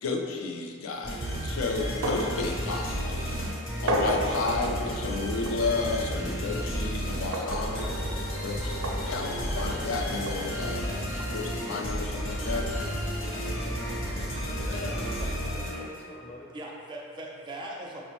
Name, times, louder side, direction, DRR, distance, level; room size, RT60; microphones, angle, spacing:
voice 1, 0.0-3.4 3.8-7.9 8.4-8.7 9.0-13.4 14.7-15.0, left 4 dB, 80° left, 2 dB, 0.4 m, -32 dB
sound 1, 1.0-16.1, equal, 60° left, 0.9 m, -32 dB
sound 2, 2.0-2.4 2.7-2.8 3.9-4.3 5.4-5.6 7.3-7.7 8.8-9.0 10.3-10.4, right 2 dB, 85° right, 0.5 m, -29 dB
voice 2, 6.1-6.8 14.5-16.5, left 1 dB, 35° left, -5 dB, 0.6 m, -43 dB
voice 3, 7.7-8.2 15.2-15.3 16.5-18.0, right 1 dB, 20° right, -2 dB, 0.4 m, -40 dB
5.9 x 2.0 x 2.9 m, 2.2 s
head